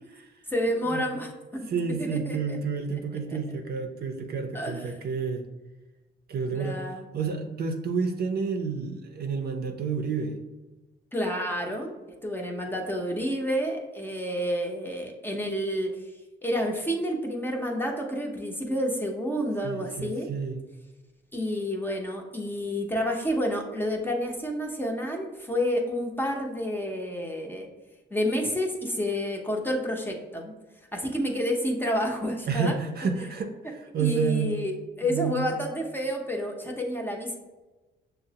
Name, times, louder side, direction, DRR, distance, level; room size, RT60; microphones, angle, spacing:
voice 1, 0.5-1.7 2.0-2.6 4.5-4.9 6.5-7.1 11.1-11.9 12.2-15.9 16.4-20.3 21.3-27.7 28.1-30.5 30.9-32.8 34.0-37.3, equal, 10° left, 1 dB, 0.7 m, -29 dB
voice 2, 1.7-5.5 6.3-10.4 19.6-20.6 32.5-34.5 35.0-35.6, right 5 dB, 50° right, 4 dB, 0.5 m, -30 dB
6.1 x 2.1 x 2.7 m, 1.1 s
cardioid pair, 90°, 20 cm